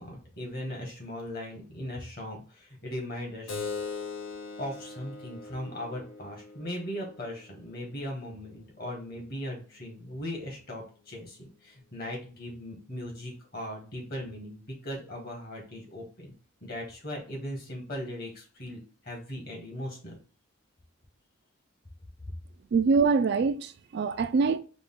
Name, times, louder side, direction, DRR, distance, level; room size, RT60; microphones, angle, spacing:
voice 1, 0.0-3.6 4.6-16.3 16.6-20.2, left 1 dB, 50° left, 1.6 m, -38 dB
Keyboard (musical), 3.5-8.6, left 4 dB, 80° left, 0.9 m, -41 dB
voice 2, 22.7-24.6, right 4 dB, 55° right, 0.3 m, -24 dB
4.9 x 2.3 x 3.7 m
head